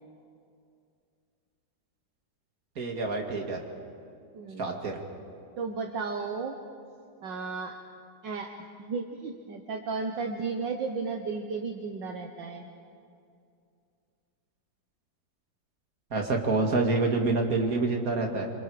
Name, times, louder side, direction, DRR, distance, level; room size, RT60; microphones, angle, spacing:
voice 1, 2.8-3.7 4.6-5.0 16.1-18.5, right 3 dB, 45° right, 2 dB, 2.7 m, -27 dB
voice 2, 4.3-4.8 5.6-6.6 7.2-7.8 8.2-8.5 8.8-12.7, right 4 dB, 70° right, 4 dB, 1.8 m, -34 dB
27.0 x 26.5 x 5.0 m, 2.4 s
omnidirectional pair, 2.1 m